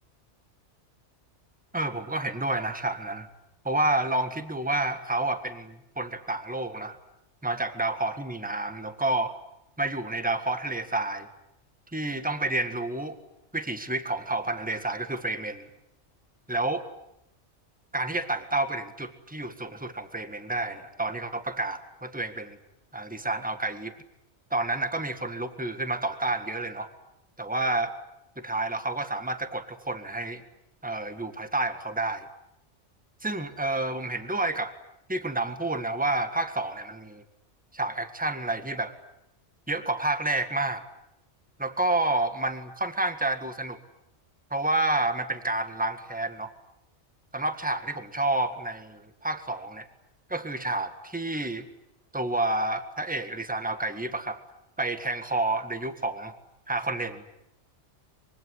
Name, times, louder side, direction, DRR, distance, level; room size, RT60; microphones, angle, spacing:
voice 1, 1.7-3.3 3.6-7.0 7.4-9.3 9.8-11.3 11.9-13.2 13.5-15.7 16.5-16.8 17.9-22.6 22.9-23.9 24.5-26.9 27.4-27.9 28.4-30.4 30.8-32.3 33.2-34.7 35.1-37.2 37.7-38.9 39.7-40.8 41.6-43.8 44.5-46.5 47.3-49.9 50.3-51.7 52.1-54.4 54.8-56.3 56.7-57.2, right 2 dB, 5° right, 9 dB, 1.8 m, -29 dB
25.5 x 23.5 x 9.7 m, 0.85 s
omnidirectional pair, 1.2 m